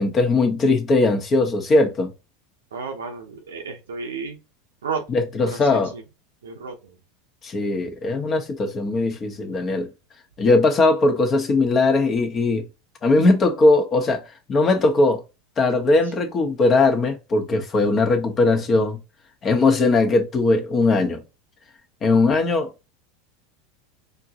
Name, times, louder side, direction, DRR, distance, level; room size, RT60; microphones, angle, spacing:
voice 1, 0.0-2.1 5.1-5.9 7.4-9.9 10.4-12.6 13.0-14.2 14.5-15.2 15.6-19.0 19.4-21.2 22.0-22.7, left 3 dB, 35° left, 1.1 m, -19 dB
voice 2, 2.7-4.4 4.8-5.1 5.4-6.0 6.4-7.0, right 5 dB, 90° right, 0.9 m, -32 dB
4.4 x 2.6 x 3.0 m
hypercardioid pair, 100°, 0 cm